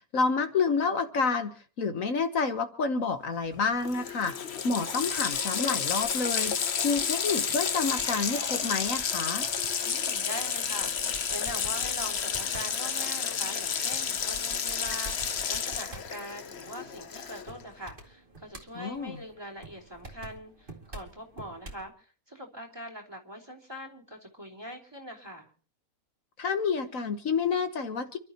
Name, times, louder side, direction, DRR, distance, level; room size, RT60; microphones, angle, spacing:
voice 1, 0.1-1.5 1.8-4.4 4.6-6.5 6.8-9.5 18.7-19.2 26.4-28.2, left 4 dB, 65° left, 8 dB, 1.5 m, -29 dB
Water tap faucet, 3.5-3.6 3.8-17.6, left 7 dB, 50° left, 1.1 m, -31 dB
Crying sobbing, 4.8-8.7 9.0-10.1, right 2 dB, 70° right, 3.1 m, -49 dB
sound 1, 4.9-21.9, right 2 dB, 35° right, 2.5 m, -50 dB
voice 2, 9.8-25.5, equal, 15° right, -1 dB, 3.1 m, -42 dB
29.5 x 12.5 x 2.9 m, 0.39 s
omnidirectional pair, 1.5 m